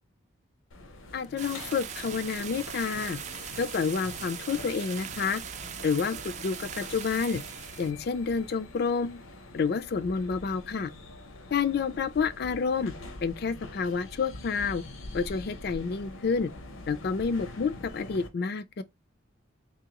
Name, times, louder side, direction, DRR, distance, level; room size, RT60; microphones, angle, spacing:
sound 1, 0.7-18.3, left 2 dB, 80° left, 0.7 m, -45 dB
voice 1, 1.1-3.2 3.6-5.4 5.8-7.4 7.8-9.2 9.5-10.9 11.5-12.9 13.2-14.8 15.1-16.5 16.9-18.8, left 5 dB, 50° left, 0.3 m, -29 dB
sound 2, 1.4-7.9, right 8 dB, 35° right, 0.3 m, -40 dB
3.7 x 2.6 x 2.9 m
head